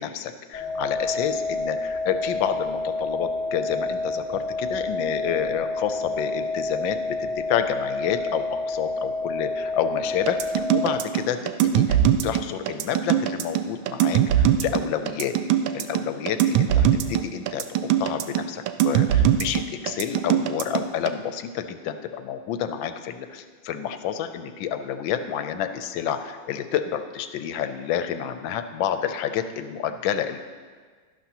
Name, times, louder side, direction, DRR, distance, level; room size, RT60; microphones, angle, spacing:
voice 1, 0.0-15.4 15.7-30.4, left 9 dB, 85° left, 9 dB, 1.4 m, -29 dB
sound 1, 0.5-11.0, left 2 dB, 25° left, 1.4 m, -29 dB
sound 2, 10.3-21.1, right 10 dB, 85° right, 1.4 m, -21 dB
12.0 x 11.5 x 2.9 m, 1.5 s
omnidirectional pair, 2.1 m